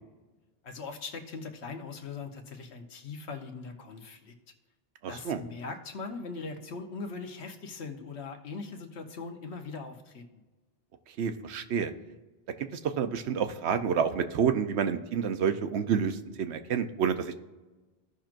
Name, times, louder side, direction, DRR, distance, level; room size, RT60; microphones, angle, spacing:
voice 1, 0.6-4.3 5.1-10.4, left 4 dB, 80° left, 5 dB, 1.2 m, -40 dB
voice 2, 5.0-5.4 11.2-11.9 12.6-17.3, right 7 dB, 80° right, 9 dB, 0.9 m, -29 dB
16.0 x 5.9 x 2.5 m, 1.2 s
omnidirectional pair, 1.1 m